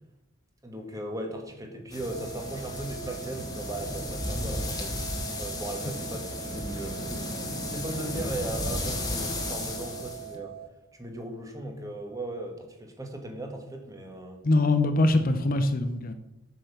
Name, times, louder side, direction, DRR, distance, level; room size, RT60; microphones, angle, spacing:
voice 1, 0.6-5.0 5.3-7.0 7.7-10.5 11.0-14.4, right 1 dB, 15° right, 3 dB, 1.5 m, -37 dB
sound 1, 1.9-10.3, left 1 dB, 20° left, 1.4 m, -34 dB
sound 2, 2.1-10.7, right 11 dB, 45° right, 1.0 m, -43 dB
voice 2, 14.4-16.1, left 2 dB, 40° left, 8 dB, 0.7 m, -23 dB
7.6 x 6.7 x 6.8 m, 0.89 s
head